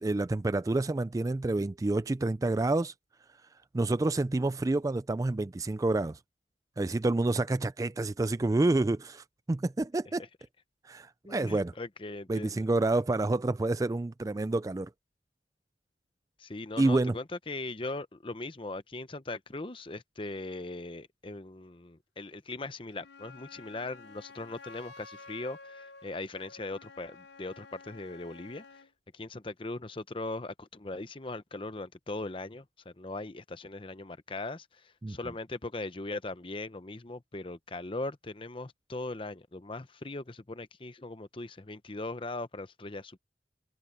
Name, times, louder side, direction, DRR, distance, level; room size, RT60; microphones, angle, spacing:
voice 1, 0.0-2.9 3.7-6.2 6.8-10.3 10.8-11.7 12.3-14.9 16.8-17.1 35.0-35.2, right 2 dB, 20° right, 0.3 m, -28 dB
voice 2, 11.2-12.6 16.4-28.9 29.1-43.2, left 2 dB, 30° left, 0.8 m, -39 dB
Wind instrument woodwind instrument, 22.9-28.9, left 4 dB, 90° left, 5.3 m, -51 dB
open air
head